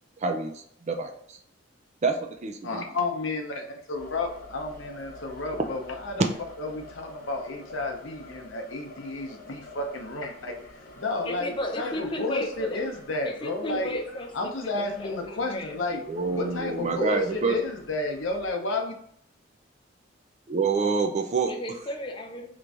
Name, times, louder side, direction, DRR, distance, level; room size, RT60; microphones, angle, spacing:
voice 1, 0.2-1.4 2.0-2.8 15.9-17.6 20.5-21.5, right 4 dB, 35° right, 4 dB, 0.4 m, -27 dB
voice 2, 2.6-6.2 6.6-14.0 14.3-16.0 16.3-18.9, left 2 dB, 80° left, 2 dB, 0.7 m, -31 dB
sound 1, 3.9-18.5, left 1 dB, 45° left, 0.9 m, -48 dB
voice 3, 11.2-12.9 13.2-15.8 21.5-22.5, left 1 dB, 25° left, 2 dB, 0.5 m, -34 dB
3.0 x 2.6 x 3.4 m, 0.67 s
head